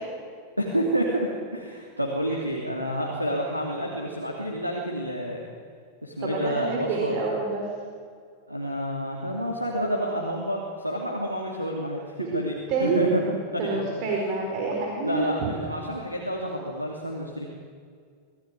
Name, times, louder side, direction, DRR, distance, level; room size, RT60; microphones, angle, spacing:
voice 1, 0.6-5.5 6.0-7.2 8.5-12.5 12.8-13.2 13.5-13.8 15.0-17.5, equal, 90° right, -1 dB, 2.8 m, -29 dB
voice 2, 6.2-7.7 12.2-12.3 12.7-13.0 13.6-15.5, right 4 dB, 40° right, 0 dB, 4.4 m, -27 dB
25.5 x 17.0 x 9.5 m, 2.1 s
figure-of-eight pair, 90°, 0 cm